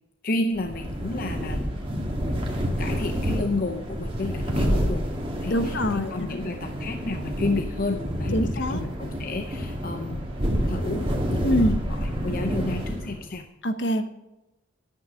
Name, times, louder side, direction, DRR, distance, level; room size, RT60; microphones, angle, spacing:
voice 1, 0.2-1.6 2.8-5.1 5.4-10.3 10.7-13.5, left 2 dB, 50° left, 6 dB, 0.7 m, -31 dB
sound 1, 0.5-13.3, equal, 30° right, 2.0 m, -28 dB
voice 2, 5.5-6.3 8.3-8.8 11.4-11.8 13.6-14.1, equal, 65° left, 9 dB, 1.0 m, -24 dB
10.0 x 9.4 x 6.3 m, 0.95 s
head